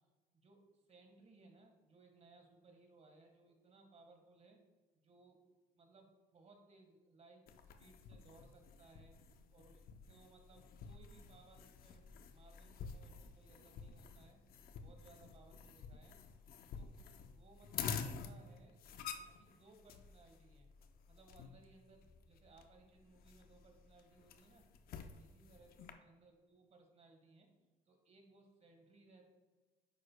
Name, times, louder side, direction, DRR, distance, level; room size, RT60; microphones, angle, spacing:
voice 1, 0.3-4.6 4.9-5.5 5.7-9.1 9.5-9.8 10.1-14.4 14.8-16.2 16.8-18.8 19.1-20.7 21.1-24.7 25.2-27.5 27.9-29.2, right 3 dB, 40° right, 4 dB, 1.5 m, -64 dB
sound 1, 7.5-25.9, left 6 dB, 60° left, 0.6 m, -50 dB
9.6 x 6.5 x 2.2 m, 1.3 s
cardioid pair, 110°, 17 cm